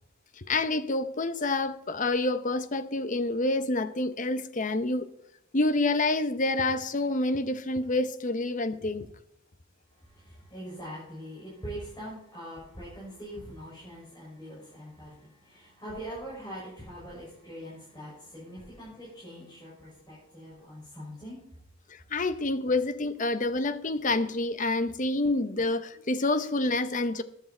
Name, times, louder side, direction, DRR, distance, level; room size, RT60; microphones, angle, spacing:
voice 1, 0.4-5.1 5.5-9.1 21.9-27.2, left 2 dB, 35° left, 0.8 m, -28 dB
voice 2, 9.9-21.4, equal, 20° left, 6.4 m, -43 dB
13.5 x 11.0 x 4.4 m
head